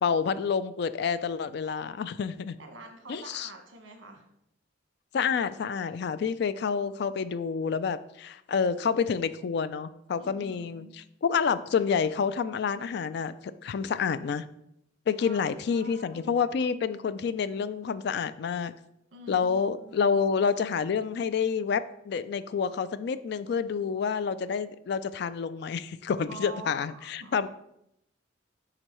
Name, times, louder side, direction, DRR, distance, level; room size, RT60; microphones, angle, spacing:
voice 1, 0.0-2.6 3.1-3.5 5.1-13.3 13.6-14.4 15.1-18.7 19.3-27.5, left 6 dB, 60° left, 14 dB, 0.3 m, -28 dB
voice 2, 2.6-4.2 10.2-10.9 15.2-16.3 19.1-20.2 26.3-27.5, right 2 dB, 70° right, 4 dB, 1.2 m, -46 dB
9.8 x 3.9 x 3.1 m, 0.79 s
head